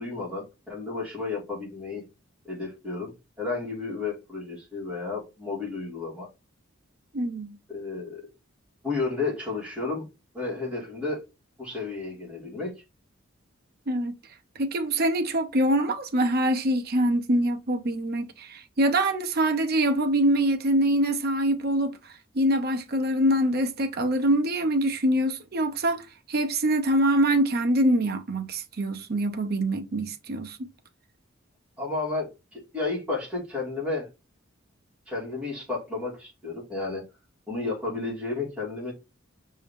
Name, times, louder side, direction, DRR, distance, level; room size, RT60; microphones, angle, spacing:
voice 1, 0.0-2.0 2.5-3.1 3.4-6.3 7.7-8.3 8.8-10.1 10.3-11.2 11.6-12.7 31.8-34.1 35.1-37.0 37.5-38.9, left 3 dB, 5° right, 2.1 m, -32 dB
voice 2, 7.1-7.6 13.9-14.1 14.6-30.7, right 1 dB, 50° right, 0.7 m, -24 dB
5.3 x 2.8 x 3.5 m
head